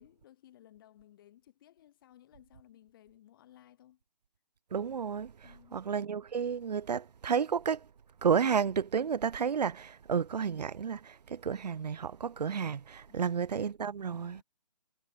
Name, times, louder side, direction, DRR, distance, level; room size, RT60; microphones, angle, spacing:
voice 1, 0.0-4.0 5.4-5.8 13.1-13.4 14.1-14.4, left 12 dB, 30° left, 5.6 m, -59 dB
voice 2, 4.7-7.9 8.2-14.4, right 7 dB, 75° right, 0.7 m, -31 dB
hypercardioid pair, 160°, 21 cm